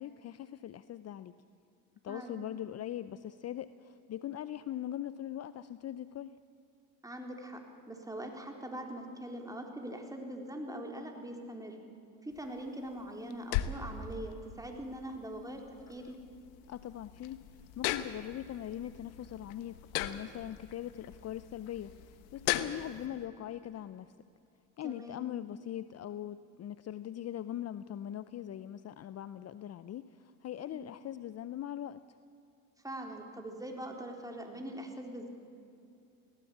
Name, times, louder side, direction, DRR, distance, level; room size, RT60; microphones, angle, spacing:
voice 1, 0.0-1.3 2.0-6.4 16.7-17.4 17.8-24.1 24.8-32.0, left 11 dB, 40° left, 14 dB, 0.6 m, -41 dB
voice 2, 2.1-2.5 7.0-11.8 12.2-15.6 15.9-16.2 24.8-25.3 30.7-31.0 32.8-35.3, right 1 dB, 10° right, 2 dB, 3.9 m, -42 dB
sound 1, 12.3-23.1, left 12 dB, 80° left, 1.2 m, -39 dB
20.0 x 16.5 x 8.5 m, 2.6 s
supercardioid pair, 75°, 41 cm